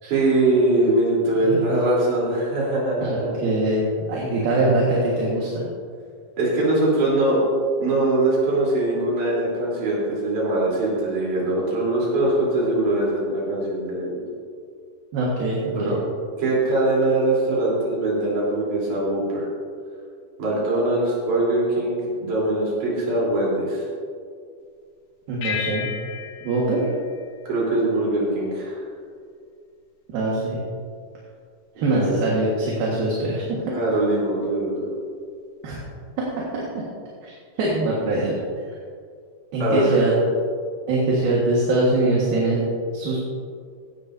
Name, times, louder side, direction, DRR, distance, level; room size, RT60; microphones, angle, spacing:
voice 1, 0.0-3.3 6.4-7.4 7.8-14.2 15.7-16.0 16.4-19.5 20.4-23.8 27.5-28.8 31.8-32.2 33.7-34.9 39.6-40.0, right 2 dB, 55° right, -6 dB, 4.9 m, -22 dB
voice 2, 3.0-5.6 15.1-16.0 25.3-25.9 26.4-26.8 30.1-30.6 31.8-33.7 35.6-35.8 36.2-36.3 36.5-36.8 37.2-37.3 37.6-38.4 39.5-40.1 40.9-42.7 42.9-43.2, right 2 dB, 70° right, -5 dB, 3.4 m, -23 dB
sound 1, 25.4-28.2, left 8 dB, 60° left, 1.8 m, -34 dB
16.0 x 12.5 x 2.7 m, 2.2 s
omnidirectional pair, 4.5 m